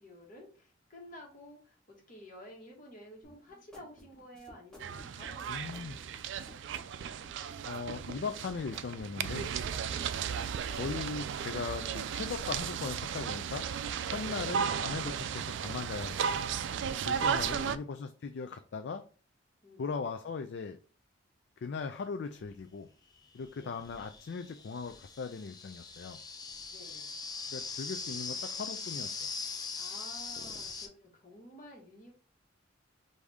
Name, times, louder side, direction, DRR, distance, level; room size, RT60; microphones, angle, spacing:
voice 1, 0.0-7.0 9.9-10.2 14.2-14.5 17.4-17.8 19.6-19.8 23.5-23.8 26.7-27.2 29.8-32.1, left 1 dB, 45° left, -1 dB, 1.7 m, -52 dB
sound 1, 3.2-11.1, equal, 5° left, 1.2 m, -56 dB
sound 2, 4.8-17.8, right 7 dB, 65° right, 0.3 m, -35 dB
voice 2, 5.5-6.0 7.6-9.5 10.7-13.6 14.1-16.4 17.1-19.0 19.8-20.8 21.6-22.9 23.3-26.2 27.5-29.3, left 5 dB, 60° left, 6 dB, 0.4 m, -39 dB
sound 3, 22.4-22.5 23.4-30.9, left 4 dB, 20° left, 0.6 m, -41 dB
4.9 x 2.7 x 3.5 m, 0.39 s
head